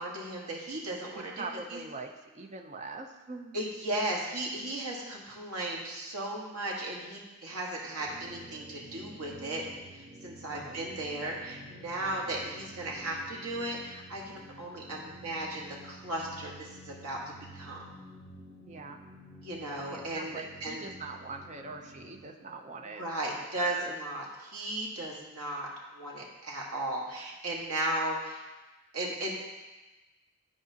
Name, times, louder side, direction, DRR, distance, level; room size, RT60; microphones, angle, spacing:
voice 1, 0.0-1.4 1.7-1.8 3.5-9.6 9.9-17.8 19.4-20.9 23.0-28.4 28.9-29.3, right 1 dB, 90° right, -2 dB, 1.5 m, -36 dB
voice 2, 1.0-3.7 10.5-10.8 18.6-19.0 19.9-23.0 23.3-23.9, right 3 dB, 30° right, 3 dB, 0.6 m, -43 dB
sound 1, 8.0-22.2, equal, 65° right, 2.4 m, -50 dB
11.5 x 4.7 x 2.8 m, 1.2 s
head